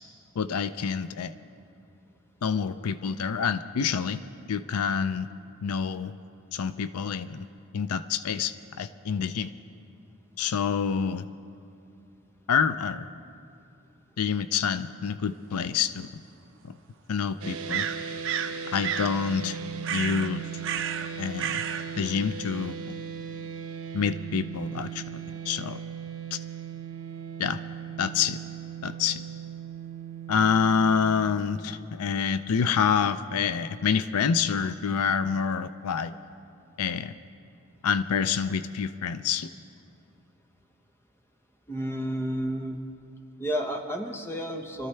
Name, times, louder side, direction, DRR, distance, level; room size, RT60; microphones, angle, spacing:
voice 1, 0.4-1.3 2.4-4.2 4.5-5.3 5.6-6.1 6.5-7.4 7.7-9.5 10.4-11.3 12.5-13.1 14.2-16.2 16.6-16.7 17.1-17.9 18.7-19.6 19.9-20.5 21.2-21.6 22.0-23.0 23.9-25.8 26.3-26.4 27.4-27.6 28.0-28.4 28.8-29.2 30.3-36.1 36.8-37.1 37.8-39.5, left 6 dB, 80° left, 13 dB, 0.4 m, -27 dB
sound 1, 15.7-15.8 17.7-18.6 18.8-19.1 19.8-20.3 20.6-21.1 21.4-21.8, right 8 dB, 60° right, 0.7 m, -30 dB
sound 2, 17.4-31.2, right 7 dB, 85° right, 1.0 m, -38 dB
voice 2, 41.7-42.8 43.4-44.9, equal, 10° left, 3 dB, 1.0 m, -31 dB
25.0 x 13.5 x 3.3 m, 2.6 s
head